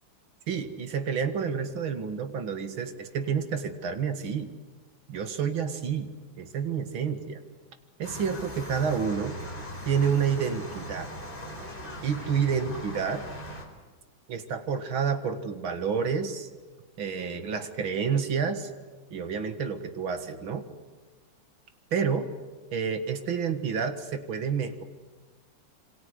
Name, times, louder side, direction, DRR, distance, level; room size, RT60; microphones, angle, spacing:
voice 1, 0.5-4.5 5.1-7.4 8.0-9.4 9.9-11.1 12.0-13.2 14.3-16.5 17.0-18.7 19.1-20.6 21.9-22.3 22.7-24.8, right 6 dB, 85° right, 8 dB, 2.6 m, -29 dB
sound 1, 8.0-13.6, equal, 25° left, 5.0 m, -40 dB
27.5 x 26.0 x 8.0 m, 1.4 s
omnidirectional pair, 2.2 m